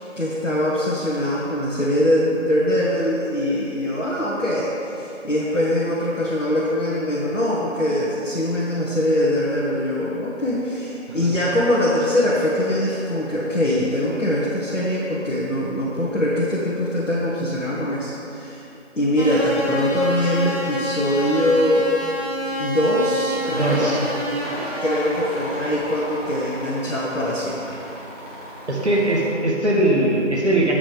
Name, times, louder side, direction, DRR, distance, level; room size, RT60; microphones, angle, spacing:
voice 1, 0.2-18.6 18.9-21.9 22.6-23.9 24.8-27.8, left 1 dB, 75° left, -7 dB, 1.5 m, -22 dB
sound 1, 19.2-29.3, equal, 30° right, 1.9 m, -29 dB
voice 2, 23.5-24.0 28.7-30.7, right 1 dB, 60° right, -3 dB, 1.6 m, -20 dB
14.0 x 5.2 x 3.5 m, 3.0 s
figure-of-eight pair, 170°, 38 cm